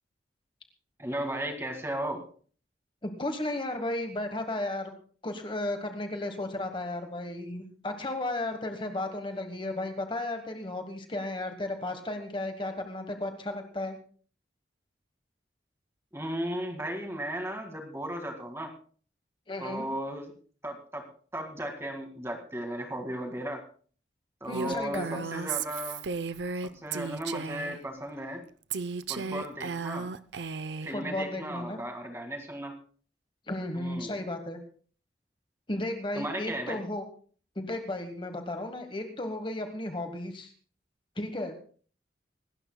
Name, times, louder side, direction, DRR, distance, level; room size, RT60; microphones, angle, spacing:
voice 1, 1.0-2.2 16.1-18.7 19.6-20.3 20.6-21.0 21.3-23.6 24.4-26.0 26.6-28.4 29.1-30.1 30.8-32.8 33.7-34.2 36.1-36.8, right 1 dB, 15° right, 4 dB, 2.0 m, -35 dB
voice 2, 3.0-4.9 5.2-14.0 19.5-19.9 24.5-25.3 30.9-31.8 33.5-34.6 35.7-37.0 37.5-40.5 41.2-41.5, left 2 dB, 25° left, 6 dB, 1.2 m, -34 dB
Female speech woman speaking, 24.5-27.8 28.7-30.9, right 5 dB, 75° right, 0.6 m, -34 dB
25.5 x 13.0 x 2.3 m, 0.43 s
head